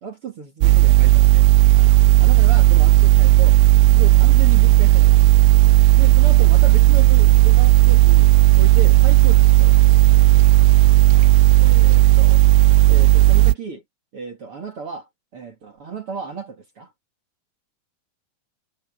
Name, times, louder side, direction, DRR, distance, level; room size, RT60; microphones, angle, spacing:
voice 1, 0.0-1.5 1.7-3.6 3.9-5.2 6.0-9.8 11.6-12.4 12.9-13.8 14.1-16.9, right 5 dB, 40° right, 2.1 m, -34 dB
sound 1, 0.6-13.6, right 17 dB, 85° right, 2.5 m, -13 dB
omnidirectional pair, 5.4 m